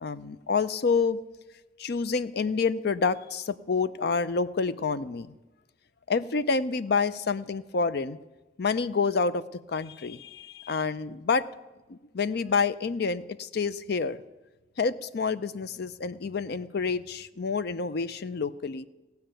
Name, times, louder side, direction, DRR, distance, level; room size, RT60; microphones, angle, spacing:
voice 1, 0.0-1.2 1.8-5.3 6.1-8.2 8.6-9.4 9.7-11.5 11.9-14.2 14.8-18.9, left 4 dB, 60° left, 15 dB, 0.5 m, -28 dB
17.0 x 5.8 x 8.9 m, 1.1 s
head